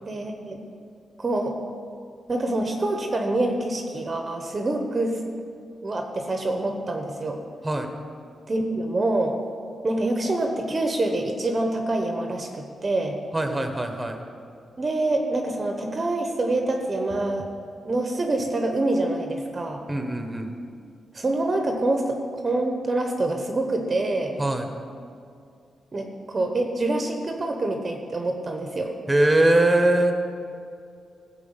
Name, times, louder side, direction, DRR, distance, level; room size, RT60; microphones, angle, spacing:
voice 1, 0.0-0.6 1.2-1.6 2.3-5.2 5.8-7.4 8.5-9.3 9.8-13.2 14.8-17.5 17.8-19.8 21.1-24.3 25.9-29.0, right 2 dB, 35° right, 3 dB, 0.9 m, -26 dB
voice 2, 13.3-14.2 19.9-20.5 24.4-24.7 29.1-30.1, right 1 dB, 15° right, 5 dB, 1.1 m, -21 dB
14.0 x 4.8 x 7.9 m, 2.4 s
cardioid pair, 100°, 0 cm